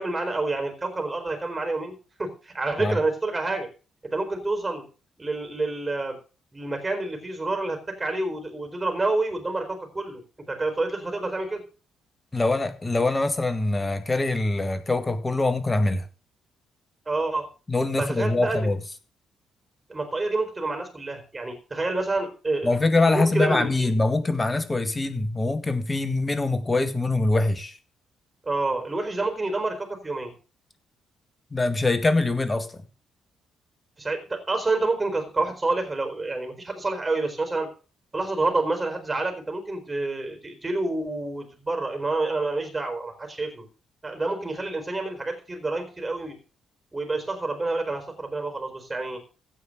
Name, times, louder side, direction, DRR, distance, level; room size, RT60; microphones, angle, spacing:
voice 1, 0.0-3.7 4.0-4.8 5.2-6.2 6.5-10.2 10.5-11.6 17.1-17.5 18.0-18.7 19.9-22.7 23.1-23.9 28.5-30.3 34.0-37.7 38.1-43.7 44.0-46.4 46.9-49.2, right 2 dB, 25° right, 4.2 m, -28 dB
voice 2, 12.3-16.1 17.7-18.8 22.6-27.7 31.5-32.8, left 2 dB, 25° left, 1.9 m, -23 dB
16.0 x 5.8 x 6.8 m
figure-of-eight pair, 40°, 0 cm